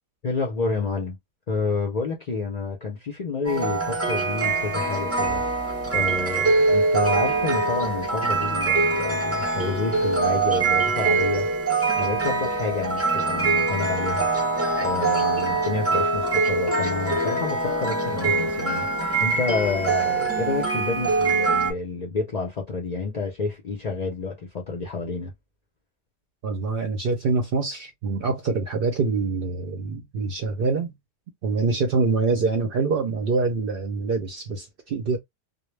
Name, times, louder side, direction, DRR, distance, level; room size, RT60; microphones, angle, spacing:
voice 1, 0.2-1.2 1.5-5.6 5.9-11.5 12.0-14.3 14.8-18.9 19.2-25.3, left 4 dB, 50° left, 0.5 m, -29 dB
sound 1, 3.4-21.7, right 3 dB, 20° right, 0.3 m, -23 dB
sound 2, 14.7-15.9 16.2-19.3, left 7 dB, 85° left, 1.0 m, -38 dB
voice 2, 26.4-30.9 31.4-35.2, right 4 dB, 60° right, 0.6 m, -25 dB
2.2 x 2.1 x 3.1 m
omnidirectional pair, 1.3 m